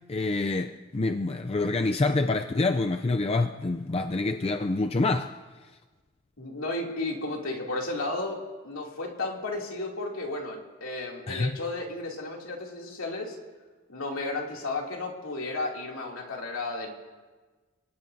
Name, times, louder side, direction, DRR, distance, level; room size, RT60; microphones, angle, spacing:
voice 1, 0.1-5.3 11.3-11.5, left 3 dB, 30° left, 7 dB, 0.4 m, -26 dB
voice 2, 6.4-8.4 8.6-13.4 13.9-16.9, left 2 dB, 70° left, -1 dB, 2.8 m, -33 dB
29.0 x 18.0 x 2.7 m, 1.3 s
head